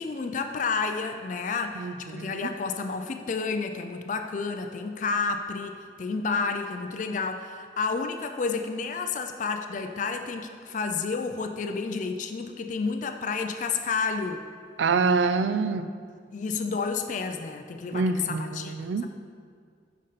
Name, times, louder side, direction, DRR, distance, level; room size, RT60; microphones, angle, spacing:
voice 1, 0.0-14.4 16.3-19.1, left 4 dB, 45° left, 6 dB, 0.4 m, -30 dB
voice 2, 1.8-2.5 14.8-15.9 17.9-19.1, right 4 dB, 85° right, 12 dB, 0.4 m, -26 dB
10.5 x 5.3 x 4.1 m, 2.1 s
head